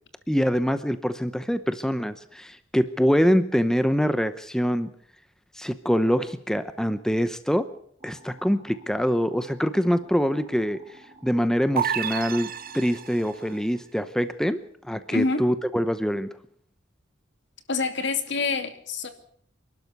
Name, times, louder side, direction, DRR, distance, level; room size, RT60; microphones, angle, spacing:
voice 1, 0.3-4.9 5.5-7.7 8.0-14.6 14.8-16.3, equal, 5° left, 11 dB, 0.8 m, -24 dB
sound 1, 8.0-13.7, equal, 30° right, 3.4 m, -52 dB
sound 2, 11.8-13.4, right 8 dB, 50° right, 1.1 m, -29 dB
voice 2, 15.1-15.4 17.7-19.1, left 4 dB, 65° left, 8 dB, 2.6 m, -26 dB
27.0 x 12.0 x 8.2 m, 0.64 s
head